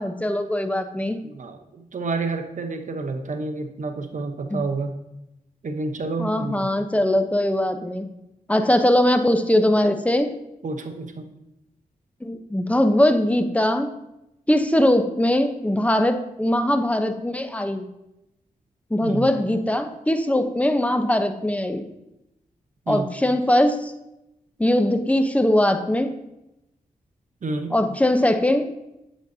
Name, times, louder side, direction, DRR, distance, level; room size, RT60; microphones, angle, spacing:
voice 1, 0.0-1.2 4.5-4.6 6.2-8.1 8.5-10.3 12.2-13.9 14.5-17.9 18.9-21.8 22.9-23.9 24.6-26.1 27.7-28.7, left 1 dB, 10° left, 7 dB, 0.8 m, -21 dB
voice 2, 1.2-5.0 5.6-6.7 10.6-11.3 19.0-19.3 22.9-23.1 27.4-27.7, right 3 dB, 55° right, 6 dB, 1.0 m, -29 dB
9.2 x 7.9 x 2.8 m, 0.90 s
cardioid pair, 55°, 15 cm